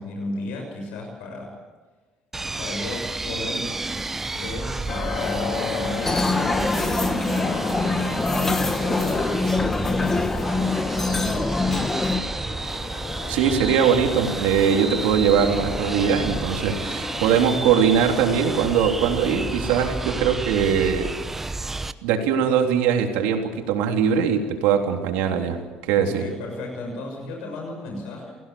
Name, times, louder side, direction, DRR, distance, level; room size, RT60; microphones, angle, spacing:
voice 1, 0.0-1.6 2.6-3.8 4.3-11.5 26.0-28.4, left 2 dB, 85° left, 2 dB, 6.6 m, -34 dB
sound 1, 2.3-21.9, right 2 dB, 10° right, 0.9 m, -31 dB
sound 2, 4.9-20.4, left 5 dB, 40° left, 3.0 m, -35 dB
sound 3, 6.0-12.2, left 3 dB, 15° left, 1.3 m, -24 dB
voice 2, 13.3-21.1 21.6-26.2, right 7 dB, 90° right, 3 dB, 3.5 m, -21 dB
29.5 x 17.0 x 7.1 m, 1.3 s
cardioid pair, 130°, 2 cm